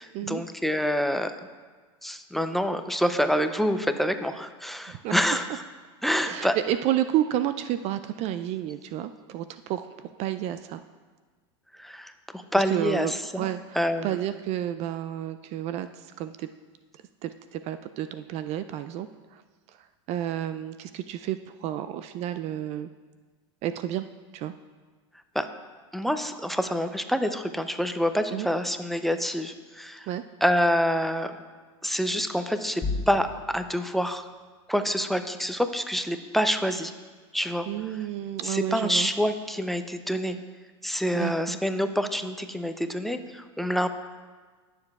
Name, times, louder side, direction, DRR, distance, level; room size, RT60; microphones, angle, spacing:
voice 1, 0.0-1.3 2.0-5.6 6.0-6.6 11.7-13.5 13.7-14.1 25.3-25.5 25.9-30.1 30.4-31.4 31.8-34.3 34.7-36.9 37.3-38.1 38.4-40.4 40.8-43.9, equal, ahead, 8 dB, 0.6 m, -27 dB
voice 2, 6.2-10.8 12.5-13.8 14.0-15.9 16.2-16.5 17.2-19.4 20.1-22.9 23.6-24.1 24.3-24.5 28.3-28.5 30.1-30.2 37.7-39.1 41.1-41.6, right 12 dB, 45° right, 11 dB, 0.4 m, -31 dB
sound 1, 32.8-33.8, left 3 dB, 20° left, 2.9 m, -32 dB
17.5 x 6.8 x 2.4 m, 1.4 s
hypercardioid pair, 105°, 15 cm